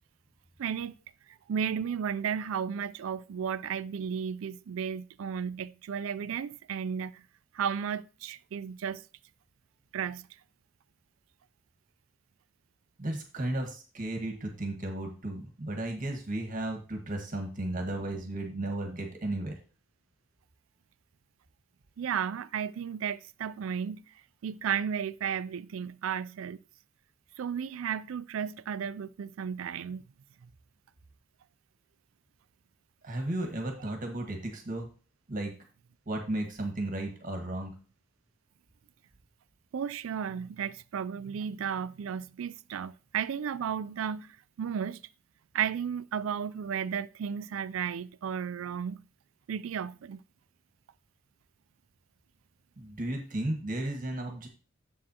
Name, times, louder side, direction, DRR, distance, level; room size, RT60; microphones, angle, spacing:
voice 1, 0.6-0.9 1.3-7.2 7.5-9.0 9.9-10.3 22.0-24.0 24.4-26.6 27.4-30.0 39.7-45.0 45.5-49.0 49.5-50.2, right 7 dB, 80° right, 0.4 m, -34 dB
voice 2, 13.0-19.6 33.0-34.9 35.3-35.5 36.1-37.7 52.8-54.5, right 1 dB, 40° right, 1.5 m, -34 dB
7.5 x 7.4 x 2.9 m
head